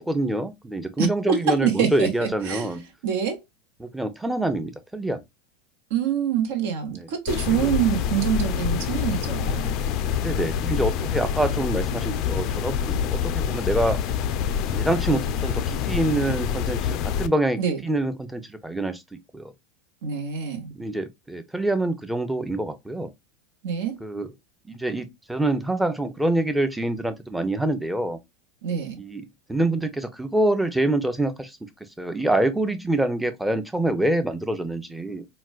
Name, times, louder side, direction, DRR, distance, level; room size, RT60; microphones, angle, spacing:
voice 1, 0.0-2.8 3.8-5.2 6.9-7.1 7.6-7.7 10.2-14.0 14.7-19.0 19.3-19.5 20.8-23.1 24.0-24.3 24.7-28.2 29.0-29.2 29.5-31.6 32.0-35.2, right 1 dB, 5° right, 0.6 m, -26 dB
voice 2, 1.0-2.8 3.0-3.4 5.9-9.7 17.6-17.8 20.0-20.7 23.6-24.0 28.6-29.0, right 8 dB, 65° right, 0.9 m, -25 dB
sound 1, 7.3-17.3, left 8 dB, 55° left, 0.4 m, -26 dB
4.1 x 2.2 x 2.4 m
hypercardioid pair, 85°, 0 cm